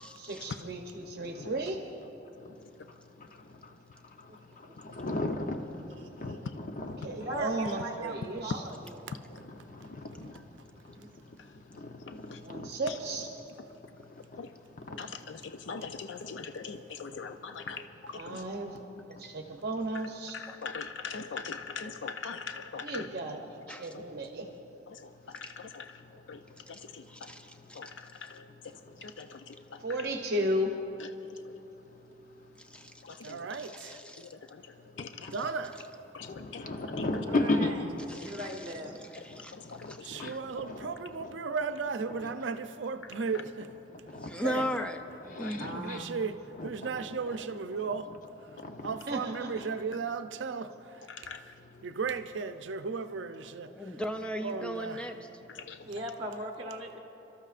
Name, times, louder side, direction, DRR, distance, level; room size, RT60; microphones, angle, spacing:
voice 1, 0.2-1.8 7.0-8.6 12.4-13.3 18.1-18.8 19.2-20.4 22.8-23.4 23.7-24.5 29.8-30.8 49.1-49.6, right 1 dB, 60° right, 0.8 m, -34 dB
voice 2, 4.8-5.6 6.2-7.1 9.3-9.4 9.9-10.3 11.8-12.2 12.5-12.7 13.1-13.2 14.9-15.0 16.6-16.8 21.1-21.2 30.3-30.4 36.3-37.7 39.8-40.3 40.6-40.9 41.2-41.3 44.1-44.3 45.2-46.0 46.5-47.4 48.8-48.9, left 2 dB, 45° left, 0.8 m, -34 dB
voice 3, 7.1-9.0 10.9-11.1 37.2-37.8 38.2-39.0 44.4-44.9 45.6-46.1 55.8-57.0, right 1 dB, 30° right, 1.1 m, -39 dB
voice 4, 15.0-17.8 18.1-18.4 20.3-23.1 23.9-24.0 24.9-26.0 26.3-26.4 26.7-27.3 27.8-27.9 28.2-28.4 29.0-29.8 33.0-33.4 34.5-34.6 35.0-35.3 36.1-36.6 37.0-37.1 39.5-40.3 45.4-45.7 51.1-51.4 55.5-55.8, left 5 dB, 80° left, 0.5 m, -42 dB
voice 5, 27.1-27.8 32.7-32.9 33.2-33.3 33.6-34.2 38.1-38.5 39.2-39.5 39.9-40.4 44.2-45.0 45.4-46.2 53.7-55.1, equal, 5° left, 0.6 m, -37 dB
voice 6, 33.2-34.0 35.3-35.8 40.0-43.7 44.4-44.6 45.7-48.1 48.8-51.0 51.4-51.5 51.8-53.7 54.4-55.1, right 5 dB, 85° right, 0.5 m, -35 dB
29.0 x 13.0 x 2.5 m
head